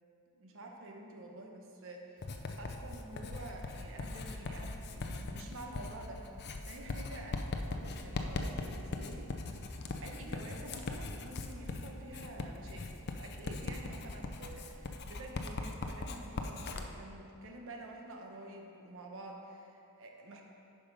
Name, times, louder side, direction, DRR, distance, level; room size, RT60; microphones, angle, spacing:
voice 1, 0.3-9.3 9.7-20.4, right 1 dB, 60° right, 1 dB, 1.0 m, -49 dB
Writing, 2.2-16.9, left 3 dB, 50° left, 0.5 m, -40 dB
8.9 x 5.2 x 5.4 m, 2.7 s
head